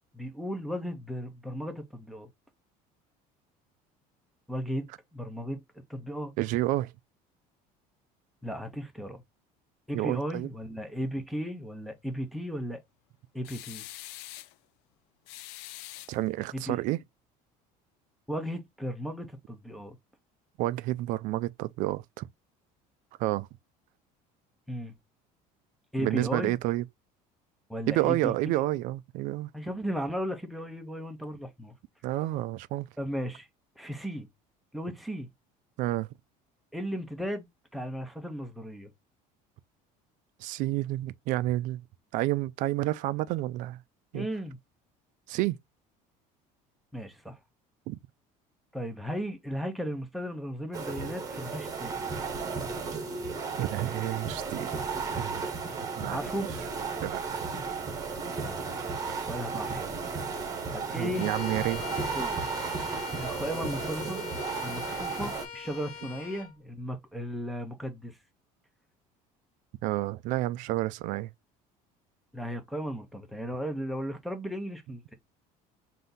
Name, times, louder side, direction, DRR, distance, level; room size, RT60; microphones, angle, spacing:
voice 1, 0.1-2.3 4.5-5.6 5.9-6.3 8.4-9.2 9.9-12.8 13.3-13.8 16.5-16.8 18.3-20.0 24.7-24.9 25.9-26.6 27.7-28.6 29.5-31.7 33.0-33.5 33.8-34.3 34.7-35.3 36.7-37.5 37.7-38.9 44.1-44.6 46.9-47.4 48.7-52.1 56.1-56.5 58.4-58.9 59.2-60.0 60.7-61.3 62.1-62.5 63.2-64.2 64.6-68.2 72.3-75.1, equal, ahead, 0.7 m, -35 dB
voice 2, 6.4-6.9 9.9-10.5 16.1-17.0 20.6-22.3 23.2-23.5 26.0-26.8 27.9-29.5 32.0-32.9 35.8-36.1 40.4-41.8 42.1-43.8 44.1-44.3 45.3-45.6 47.9-48.0 53.6-54.7 55.2-55.5 56.0-56.5 57.0-57.4 61.0-62.0 69.8-71.3, right 16 dB, 55° right, 0.4 m, -30 dB
sound 1, 13.4-14.6 15.3-16.5, left 15 dB, 75° left, 0.4 m, -44 dB
sound 2, 50.7-65.4, right 5 dB, 20° right, 1.3 m, -34 dB
Bowed string instrument, 61.1-66.5, left 7 dB, 55° left, 1.2 m, -42 dB
3.5 x 2.7 x 3.8 m
cardioid pair, 165°, 16 cm